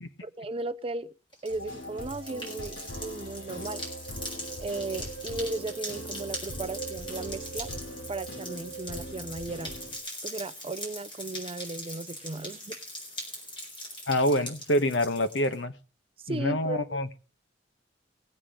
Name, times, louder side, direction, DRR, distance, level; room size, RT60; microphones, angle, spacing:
voice 1, 0.2-1.1 1.4-3.8 4.6-7.7 8.1-9.7 10.2-12.8 16.2-17.0, right 2 dB, 30° right, 0.5 m, -36 dB
sound 1, 1.3-15.5, left 1 dB, 25° left, 4.4 m, -41 dB
sound 2, 1.5-10.0, right 1 dB, 85° left, 5.3 m, -40 dB
voice 2, 14.1-15.7 16.3-17.2, left 1 dB, 70° left, 1.2 m, -26 dB
20.0 x 8.6 x 3.7 m
head